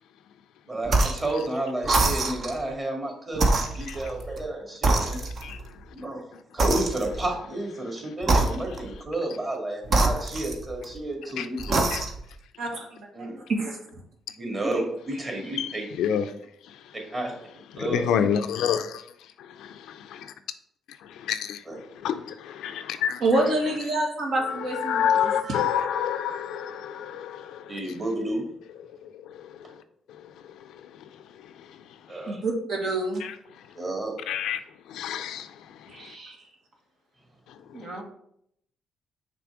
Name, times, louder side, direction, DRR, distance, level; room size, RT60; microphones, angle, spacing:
voice 1, 0.7-5.2 5.9-6.2 6.5-11.8 13.1-13.4 14.4-15.8 17.1-17.3 17.7-18.3 21.7-21.8 27.7-28.5 32.1-32.4 33.8-34.1, right 1 dB, 30° right, 2.2 m, -31 dB
sound 1, 0.9-1.3 1.8-2.6 3.3-4.5 4.8-5.6 6.6-7.3 8.2-8.9 9.9-11.0 11.6-12.3, right 2 dB, 50° right, 0.9 m, -25 dB
voice 2, 12.6-13.1 13.5-13.8 23.2-25.7 32.3-33.2 35.9-36.4 37.7-38.0, right 2 dB, 65° right, 1.5 m, -27 dB
voice 3, 17.9-19.0 19.4-20.3 21.0-23.2 24.4-27.8 29.0-29.8 30.6-30.8 31.4-31.5 33.2-33.3 34.3-34.6 34.9-35.5 35.8-35.9 37.9-38.0, left 9 dB, 85° left, 0.4 m, -28 dB
5.9 x 3.4 x 5.0 m
cardioid pair, 90°, 0 cm